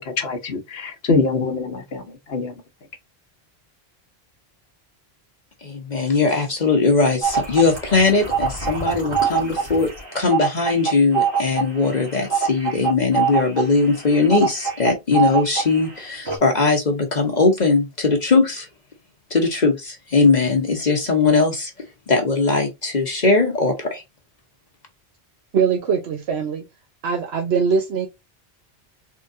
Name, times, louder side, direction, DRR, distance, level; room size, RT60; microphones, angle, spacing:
voice 1, 0.0-2.6, left 3 dB, 70° left, 1.1 m, -24 dB
voice 2, 5.6-18.7 19.3-24.0, left 4 dB, 45° left, 0.9 m, -20 dB
sound 1, 7.2-15.9 16.3-16.4, right 7 dB, 55° right, 2.0 m, -24 dB
voice 3, 25.5-26.6 27.0-28.1, right 6 dB, 85° right, 1.0 m, -21 dB
3.8 x 3.1 x 2.5 m
omnidirectional pair, 1.1 m